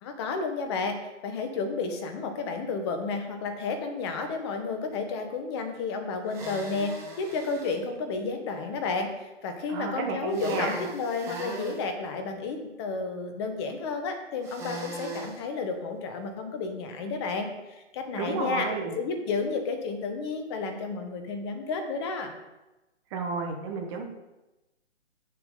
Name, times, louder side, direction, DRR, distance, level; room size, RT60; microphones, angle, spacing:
voice 1, 0.0-1.0 1.2-18.7 19.0-22.3, left 4 dB, 20° left, 6 dB, 1.1 m, -32 dB
sound 1, 6.3-7.8 10.3-11.8 14.4-15.4, right 2 dB, 10° right, 0.8 m, -39 dB
voice 2, 9.7-10.7 18.2-18.9 23.1-24.0, right 4 dB, 25° right, 2 dB, 1.3 m, -31 dB
8.3 x 6.7 x 3.9 m, 1.0 s
figure-of-eight pair, 140°, 36 cm